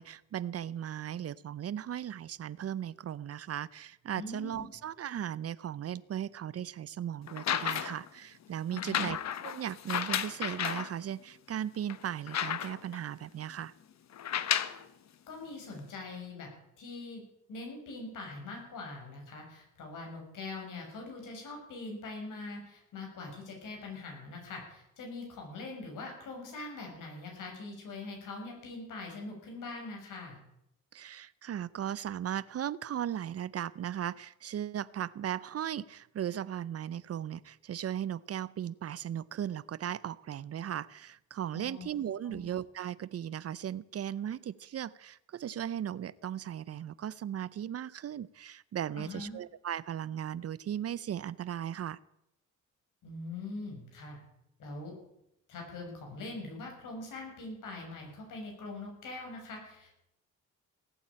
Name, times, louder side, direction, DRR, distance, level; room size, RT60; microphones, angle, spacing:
voice 1, 0.0-9.2 9.4-13.7 30.9-52.0, right 10 dB, 50° right, 20 dB, 0.6 m, -37 dB
voice 2, 4.2-4.6 8.7-9.1 15.3-16.5 16.8-17.2 17.5-30.4 41.5-41.9 42.3-42.4 48.9-49.4 53.0-54.2 54.6-54.9 55.5-59.9, left 3 dB, 75° left, 1 dB, 6.9 m, -43 dB
sound 1, 7.3-8.1 8.8-10.9 11.5-11.6 11.9-13.0 14.1-14.8 15.8-15.9, left 9 dB, 55° left, 1.1 m, -33 dB
18.0 x 8.8 x 8.7 m, 0.82 s
cardioid pair, 85°, 32 cm